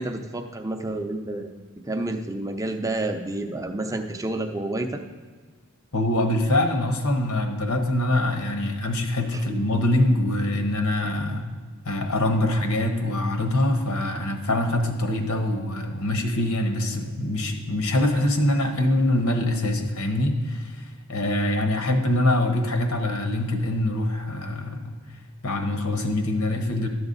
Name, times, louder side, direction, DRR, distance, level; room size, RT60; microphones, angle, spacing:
voice 1, 0.0-1.5 1.9-5.0 9.3-9.4, right 2 dB, 15° right, 5 dB, 0.6 m, -29 dB
voice 2, 5.9-11.5 11.8-25.0 25.4-26.9, left 1 dB, 75° left, 5 dB, 1.1 m, -24 dB
12.0 x 7.0 x 4.0 m, 1.5 s
head